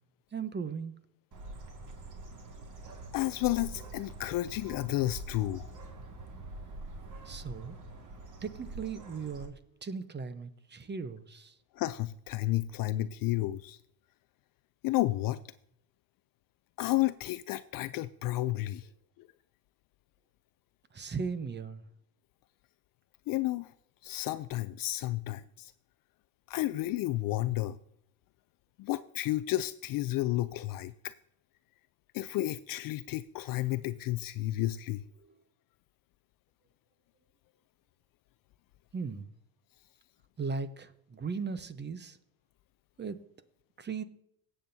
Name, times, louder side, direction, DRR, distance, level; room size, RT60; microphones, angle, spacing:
voice 1, 0.3-0.9 7.2-7.8 8.4-11.6 18.8-18.9 20.9-21.9 32.3-32.4 35.2-35.4 38.9-39.3 40.4-42.2 43.0-43.2 43.8-44.0, right 5 dB, 20° right, 13 dB, 0.9 m, -38 dB
Bird, 1.3-9.5, right 2 dB, 35° right, 2.1 m, -45 dB
voice 2, 3.1-5.7 11.7-13.8 14.8-15.4 16.8-18.9 19.2-19.3 23.3-23.7 24.0-25.7 26.5-27.8 28.8-31.1 32.1-35.0, left 16 dB, 45° left, 14 dB, 0.4 m, -31 dB
18.0 x 7.9 x 2.7 m, 0.72 s
supercardioid pair, 90°, 50 cm